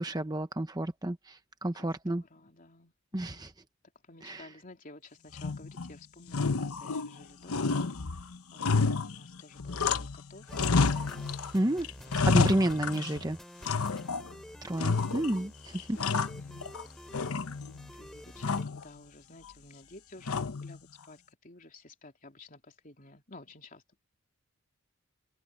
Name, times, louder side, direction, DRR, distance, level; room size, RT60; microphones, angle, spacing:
voice 1, 0.0-2.2 3.1-3.5 4.2-4.5 11.5-11.9 12.3-13.4 14.6-16.0, right 1 dB, 20° right, 0.9 m, -30 dB
voice 2, 1.7-3.4 4.0-7.7 8.1-10.5 12.0-12.7 13.7-14.4 15.9-16.7 17.5-24.0, left 2 dB, 40° left, 3.4 m, -53 dB
sound 1, 5.3-5.9 6.3-7.2 7.5-10.2 10.5-11.5 11.8-13.2 13.6-14.3 14.8-15.4 15.8-16.8 17.1-17.9 18.4-18.8 20.3-20.8, left 4 dB, 80° left, 0.9 m, -30 dB
sound 2, 10.5-18.6, equal, ahead, 3.0 m, -49 dB
head